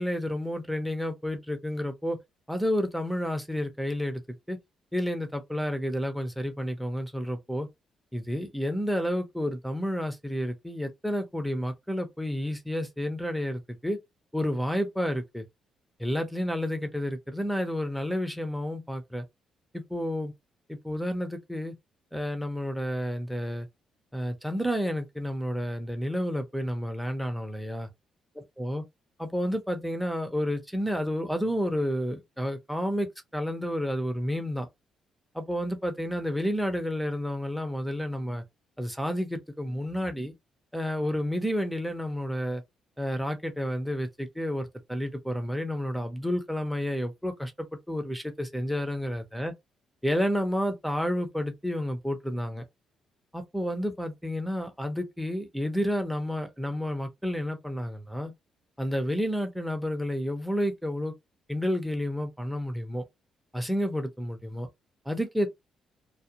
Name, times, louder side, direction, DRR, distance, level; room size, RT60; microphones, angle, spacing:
voice 1, 0.0-2.2 2.5-4.6 4.9-7.7 8.1-14.0 14.3-15.5 16.0-19.3 19.7-20.3 20.7-21.7 22.1-23.7 24.1-27.9 28.6-28.8 29.2-33.1 33.3-34.7 35.3-38.4 38.8-40.3 40.7-42.6 43.0-49.5 50.0-52.6 53.3-58.3 58.8-61.1 61.5-63.0 63.5-64.7 65.1-65.5, equal, ahead, 0.7 m, -30 dB
2.4 x 2.1 x 2.8 m
cardioid pair, 90°, 0 cm